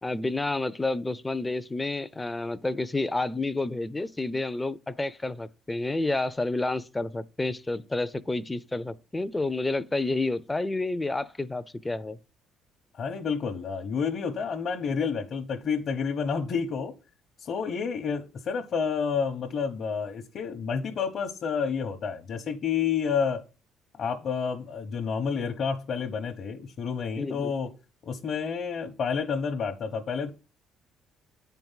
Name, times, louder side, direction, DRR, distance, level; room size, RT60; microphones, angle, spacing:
voice 1, 0.0-12.2 27.2-27.5, left 2 dB, 15° left, 0.5 m, -30 dB
voice 2, 12.9-16.9 17.4-23.4 24.0-27.7 28.0-30.3, left 6 dB, 50° left, 1.0 m, -29 dB
8.7 x 4.6 x 5.5 m
cardioid pair, 115°, 0 cm